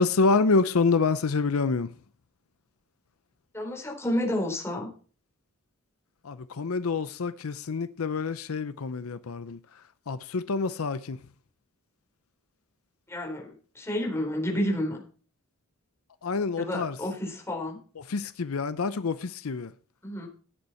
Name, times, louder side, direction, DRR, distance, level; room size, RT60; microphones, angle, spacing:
voice 1, 0.0-1.9 6.2-11.2 16.2-17.0 18.0-19.7, left 4 dB, 80° left, 0.6 m, -27 dB
voice 2, 3.5-4.9 13.1-15.0 16.6-17.8 20.0-20.3, left 1 dB, 10° left, 4.4 m, -30 dB
14.5 x 9.7 x 4.4 m
head